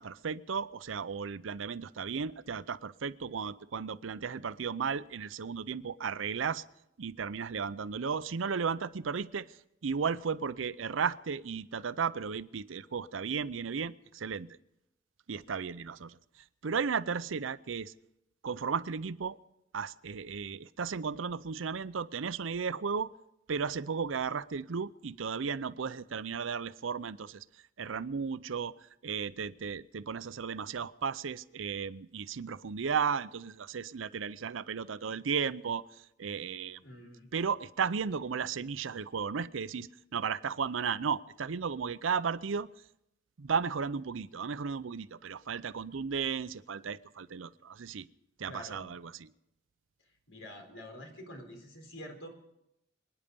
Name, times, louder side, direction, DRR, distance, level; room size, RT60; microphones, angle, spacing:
voice 1, 0.0-6.6 7.0-9.5 9.8-14.5 15.3-16.2 16.6-17.9 18.4-19.4 19.7-23.1 23.5-27.4 27.8-28.7 29.0-35.9 36.2-36.8 37.3-42.7 43.4-48.1 48.4-49.3, right 6 dB, 90° right, 16 dB, 0.6 m, -34 dB
voice 2, 36.8-37.3 48.5-48.9 50.3-52.3, equal, 85° left, 4 dB, 3.9 m, -47 dB
26.0 x 10.0 x 5.3 m, 0.83 s
head